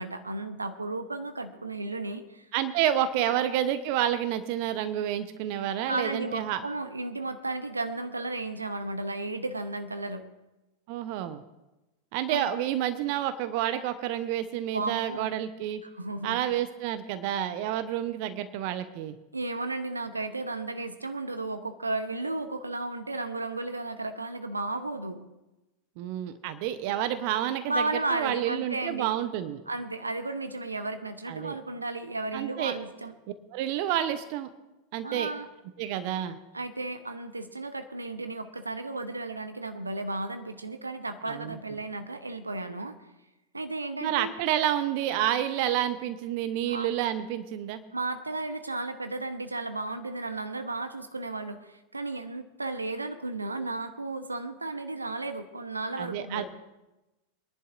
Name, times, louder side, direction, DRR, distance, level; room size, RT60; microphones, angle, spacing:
voice 1, 0.0-2.5 3.1-3.2 5.9-10.2 12.3-12.5 14.7-15.3 15.8-16.4 19.3-25.2 27.6-29.2 29.7-33.1 35.0-35.5 36.5-43.0 43.5-44.3 46.7-46.9 47.9-56.5, right 2 dB, 80° right, 10 dB, 0.9 m, -34 dB
voice 2, 2.5-6.6 10.9-11.4 12.1-15.8 16.2-19.2 26.0-29.6 31.3-31.6 32.3-32.8 33.5-34.5 34.9-35.3 35.8-36.4 41.3-41.6 44.0-47.8 56.0-56.5, right 11 dB, 45° right, 11 dB, 0.7 m, -29 dB
24.5 x 11.0 x 2.6 m, 1.0 s
figure-of-eight pair, 90°, 0 cm